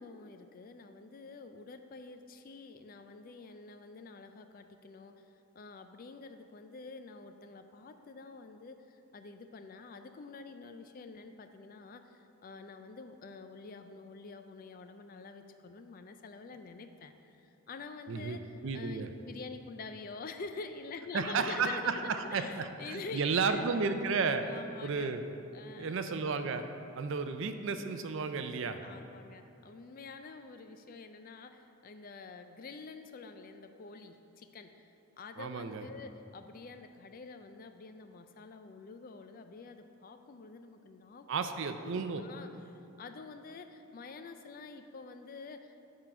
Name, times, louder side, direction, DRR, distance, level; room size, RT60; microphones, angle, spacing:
voice 1, 0.0-5.2 5.6-18.4 18.7-23.6 24.4-25.1 25.5-26.0 28.8-34.9 35.2-41.3 41.8-45.8, left 4 dB, 40° left, 8 dB, 0.3 m, -47 dB
voice 2, 18.6-19.1 21.1-24.4 24.8-25.2 25.8-26.6 27.0-28.8 35.4-35.9 41.3-42.2, right 5 dB, 55° right, 8 dB, 0.4 m, -33 dB
9.0 x 3.8 x 5.8 m, 2.9 s
head